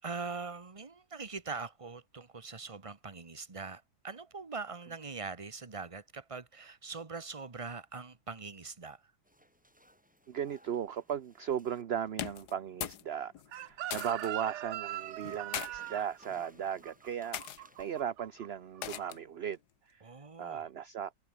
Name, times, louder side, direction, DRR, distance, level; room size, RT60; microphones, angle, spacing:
voice 1, 0.0-9.0 20.0-20.7, right 4 dB, 20° right, 1.3 m, -42 dB
sound 1, 9.2-11.8 14.9-18.0, equal, 5° right, 5.7 m, -63 dB
voice 2, 10.3-17.4 17.8-19.6 19.8-20.0 20.4-21.1, right 9 dB, 50° right, 0.9 m, -37 dB
sound 2, 12.1-13.1 13.3-14.3 15.2-15.7 16.5-16.7 17.3-17.6 18.8-19.3, left 11 dB, 80° left, 1.5 m, -39 dB
Chicken rooster, 13.5-18.5 18.8-19.1, right 13 dB, 75° right, 0.6 m, -41 dB
omnidirectional pair, 1.7 m